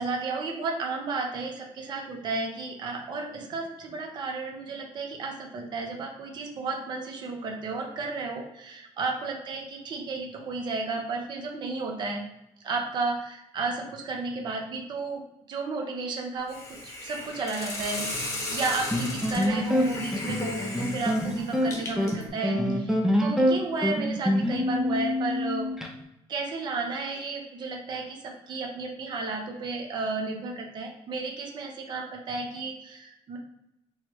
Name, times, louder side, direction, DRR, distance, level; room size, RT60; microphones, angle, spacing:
voice 1, 0.0-12.2 12.6-15.2 15.5-25.7 26.3-33.4, right 3 dB, 45° right, 2 dB, 0.7 m, -33 dB
Hiss, 16.5-22.3, left 2 dB, 25° left, 1.0 m, -35 dB
sound 1, 18.9-25.9, equal, 5° right, 0.5 m, -26 dB
3.1 x 3.1 x 4.6 m, 0.87 s
cardioid pair, 160°, 11 cm